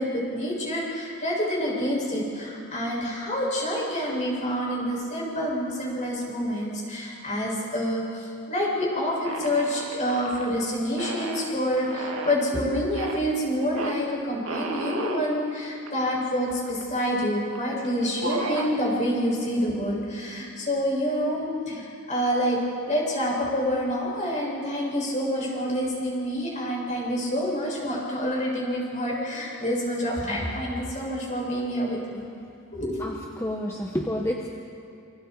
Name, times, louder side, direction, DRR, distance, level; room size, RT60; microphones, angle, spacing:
voice 1, 0.0-32.2 32.7-33.0, equal, 35° left, -4 dB, 7.9 m, -27 dB
sound 1, 9.2-10.5 10.9-12.5 12.9-13.2 13.8-13.9 14.4-15.2 15.9-16.0 16.2-16.9 17.5-17.7 18.0-18.7, right 3 dB, 65° right, 2.2 m, -33 dB
voice 2, 33.0-34.5, equal, 10° left, 0 dB, 1.3 m, -29 dB
28.5 x 28.0 x 4.9 m, 2.6 s
head